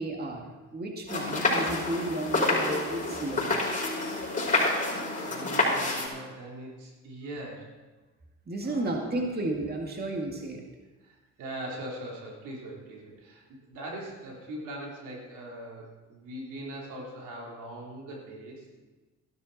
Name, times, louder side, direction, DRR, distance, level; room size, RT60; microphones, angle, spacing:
voice 1, 0.0-3.5 8.5-10.6, right 2 dB, 30° right, 1 dB, 2.1 m, -33 dB
sound 1, 1.1-6.1, left 2 dB, 25° left, 5.4 m, -28 dB
voice 2, 5.2-7.7 8.6-9.2 11.0-18.8, right 1 dB, 85° right, -2 dB, 3.6 m, -41 dB
15.0 x 12.5 x 4.2 m, 1.2 s
cardioid pair, 90°, 30 cm